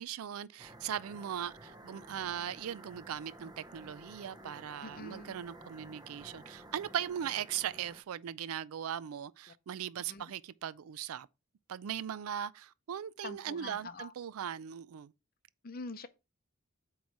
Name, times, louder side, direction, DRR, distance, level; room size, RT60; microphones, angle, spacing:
voice 1, 0.0-11.3 11.7-15.1, right 9 dB, 80° right, 0.4 m, -39 dB
sound 1, 0.6-8.0, right 1 dB, 20° right, 0.6 m, -53 dB
voice 2, 4.8-5.4 10.0-10.3 13.2-14.1 15.6-16.1, left 3 dB, 40° left, 0.6 m, -45 dB
8.2 x 3.1 x 4.7 m
head